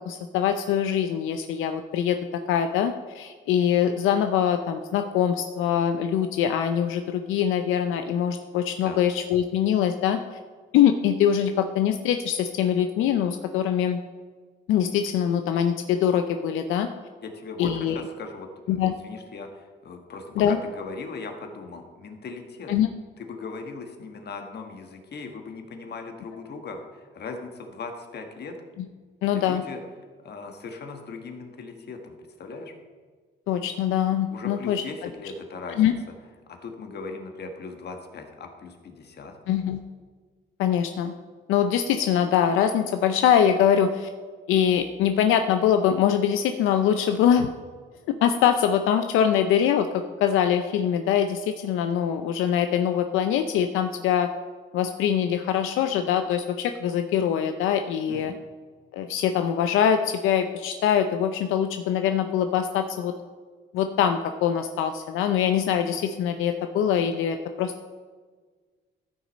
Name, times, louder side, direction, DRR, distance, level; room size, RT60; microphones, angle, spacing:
voice 1, 0.0-2.2 2.5-10.2 10.7-14.0 14.7-16.9 17.6-18.0 18.7-18.9 20.4-20.6 22.7-22.9 29.2-29.6 33.5-34.8 35.8-35.9 39.5-39.8 40.6-41.1 41.5-44.1 44.5-47.5 48.1-54.3 54.7-58.3 58.9-63.1 63.7-67.9, left 9 dB, 90° left, 8 dB, 0.5 m, -23 dB
voice 2, 17.2-22.7 23.2-28.6 29.3-29.8 30.2-32.7 34.3-36.0 36.5-39.3 58.1-58.4, left 4 dB, 55° left, 4 dB, 1.5 m, -39 dB
13.5 x 6.2 x 4.1 m, 1.5 s
cardioid pair, 90°, 20 cm